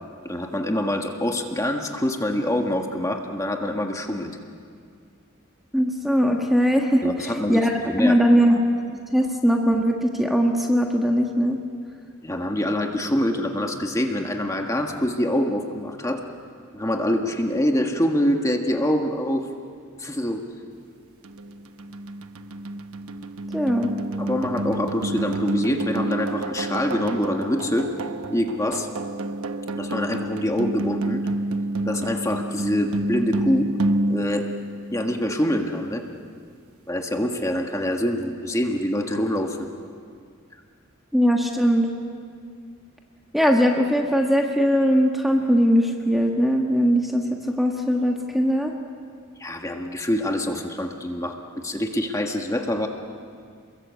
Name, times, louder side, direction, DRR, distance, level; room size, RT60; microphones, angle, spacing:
voice 1, 0.2-4.4 7.0-8.2 12.2-16.2 16.7-19.5 20.0-20.4 24.2-27.9 28.3-28.9 29.7-31.2 31.8-33.7 34.1-34.5 34.9-36.0 36.9-39.7 49.4-52.9, left 1 dB, 15° left, 3 dB, 1.6 m, -25 dB
voice 2, 5.7-7.7 8.0-8.6 8.9-11.6 23.5-23.9 41.1-41.9 43.3-48.7, equal, ahead, 1 dB, 1.5 m, -20 dB
sound 1, 21.2-35.4, right 1 dB, 75° right, 1.0 m, -29 dB
29.0 x 22.0 x 8.2 m, 2.2 s
head